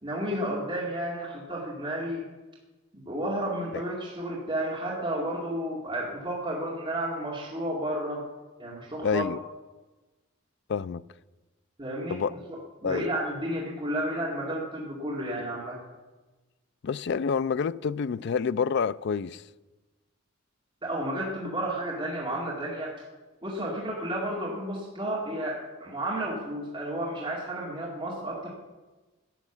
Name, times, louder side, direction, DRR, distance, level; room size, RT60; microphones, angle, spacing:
voice 1, 0.0-2.3 2.9-8.2 8.6-9.3 11.8-15.8 20.8-22.9 23.4-28.5, right 1 dB, 25° right, 2.2 m, -32 dB
voice 2, 9.0-9.4 10.7-11.0 12.1-12.3 12.8-13.1 16.8-19.4, left 6 dB, 55° left, 0.4 m, -28 dB
12.0 x 9.0 x 7.2 m
head